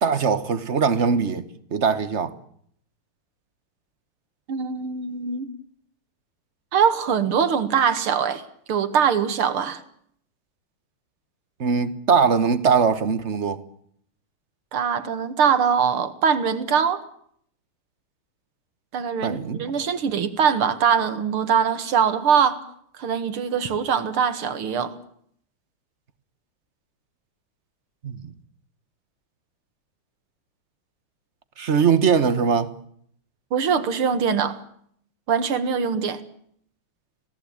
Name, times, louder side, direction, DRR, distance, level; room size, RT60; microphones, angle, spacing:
voice 1, 0.0-2.3 11.6-13.6 19.2-19.7 28.0-28.3 31.6-32.7, right 6 dB, 40° right, 1.4 m, -21 dB
voice 2, 4.5-5.5 6.7-8.4 8.7-9.8 14.7-17.0 18.9-22.6 23.0-24.9 33.5-34.6 35.3-36.2, right 7 dB, 90° right, 2.6 m, -22 dB
26.0 x 18.0 x 8.9 m
omnidirectional pair, 2.3 m